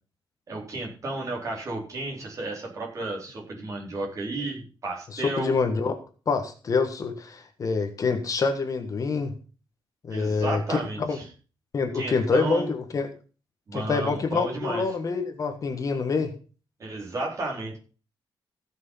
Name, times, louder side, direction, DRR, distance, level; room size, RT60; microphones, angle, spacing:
voice 1, 0.5-5.5 10.1-11.2 11.9-12.7 13.7-14.8 16.8-17.8, right 2 dB, 35° right, -1 dB, 4.2 m, -32 dB
voice 2, 5.1-5.9 6.3-9.3 10.1-11.2 11.7-13.1 13.7-16.3, left 4 dB, 40° left, 6 dB, 1.5 m, -26 dB
15.5 x 6.3 x 5.6 m, 0.36 s
wide cardioid pair, 165°, 9 cm